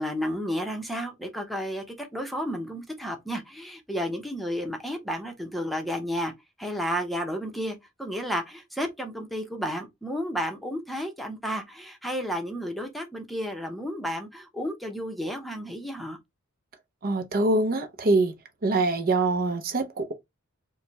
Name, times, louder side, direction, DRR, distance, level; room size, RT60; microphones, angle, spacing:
voice 1, 0.0-6.3 6.6-16.2, equal, ahead, 0.7 m, -32 dB
voice 2, 17.0-18.3 18.6-20.1, right 2 dB, 45° right, 0.6 m, -24 dB
4.8 x 2.2 x 2.7 m
head